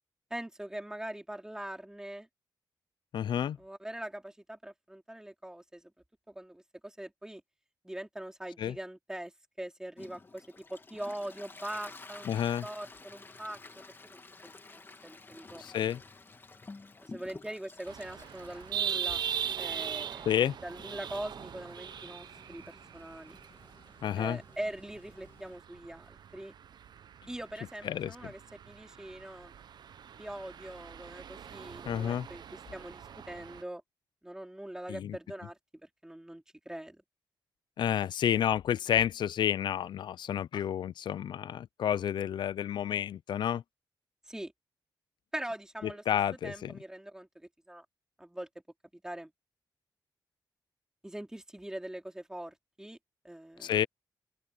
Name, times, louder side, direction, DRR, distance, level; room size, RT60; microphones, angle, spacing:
voice 1, 0.3-2.3 3.6-5.9 6.3-7.4 7.8-9.3 9.6-12.3 12.6-13.6 14.0-14.3 14.7-15.6 17.0-19.2 19.6-20.3 20.6-23.4 24.2-26.5 27.3-28.4 28.7-29.5 30.2-33.8 34.2-37.0 38.3-38.4 44.3-44.5 45.3-46.0 46.4-47.9 48.2-48.5 48.9-49.3 51.0-53.0 53.2-53.8, right 1 dB, 10° right, 3.8 m, -42 dB
voice 2, 3.1-3.6 8.6-8.7 12.3-12.7 15.6-16.0 20.3-20.5 24.0-24.4 27.9-28.1 31.9-32.3 34.9-35.2 37.8-43.6 46.1-46.7 53.6-53.9, left 10 dB, 70° left, 0.4 m, -30 dB
Toilet flush, 10.0-25.5, left 3 dB, 30° left, 2.7 m, -52 dB
sound 1, 17.9-33.6, right 8 dB, 65° right, 0.7 m, -41 dB
open air
cardioid pair, 115°, 8 cm